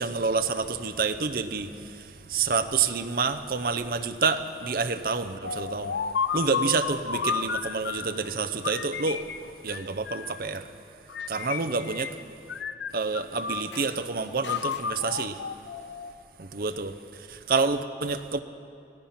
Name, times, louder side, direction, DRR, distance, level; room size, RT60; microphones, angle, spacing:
voice 1, 0.0-6.0 6.3-9.2 9.6-10.6 11.3-12.1 12.9-15.4 16.4-18.4, right 4 dB, 55° right, 9 dB, 0.7 m, -28 dB
sound 1, 5.4-8.2 8.6-10.4 11.1-12.2 12.5-13.9 14.4-16.2, left 6 dB, 90° left, 0.6 m, -32 dB
16.5 x 14.5 x 5.8 m, 2.5 s
head